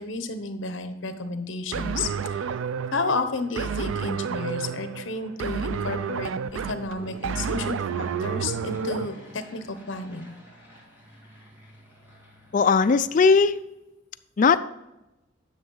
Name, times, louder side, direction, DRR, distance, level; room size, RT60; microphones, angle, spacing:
voice 1, 0.0-2.5 2.9-10.3, left 3 dB, 70° left, 9 dB, 0.8 m, -32 dB
sound 1, 1.7-9.1, right 6 dB, 80° right, 0.3 m, -30 dB
Fixed-wing aircraft airplane, 2.7-13.7, equal, 10° right, 2.0 m, -50 dB
voice 2, 12.5-13.5 14.4-14.6, left 5 dB, 40° left, 11 dB, 0.3 m, -18 dB
9.7 x 6.5 x 3.9 m, 0.95 s
head